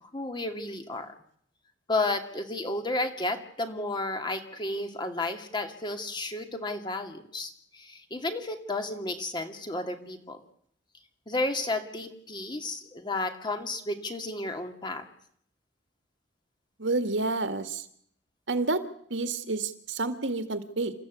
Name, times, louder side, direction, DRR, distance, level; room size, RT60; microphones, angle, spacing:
voice 1, 0.0-1.1 1.9-10.4 11.3-15.0, left 2 dB, 25° left, 6 dB, 2.4 m, -32 dB
voice 2, 16.8-17.8 18.5-18.8 19.1-20.9, right 3 dB, 80° right, 10 dB, 1.9 m, -29 dB
28.5 x 14.0 x 8.3 m, 0.66 s
head